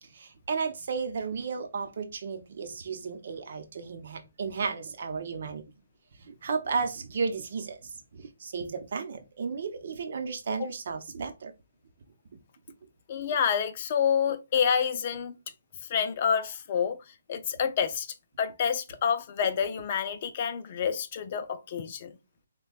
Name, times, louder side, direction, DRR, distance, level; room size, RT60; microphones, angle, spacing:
voice 1, 0.0-5.6 6.3-11.5, right 5 dB, 55° right, 0.7 m, -34 dB
voice 2, 13.1-15.4 15.9-18.1 18.4-22.2, left 7 dB, 40° left, 0.4 m, -28 dB
6.1 x 2.2 x 2.3 m
hypercardioid pair, 160°, 0 cm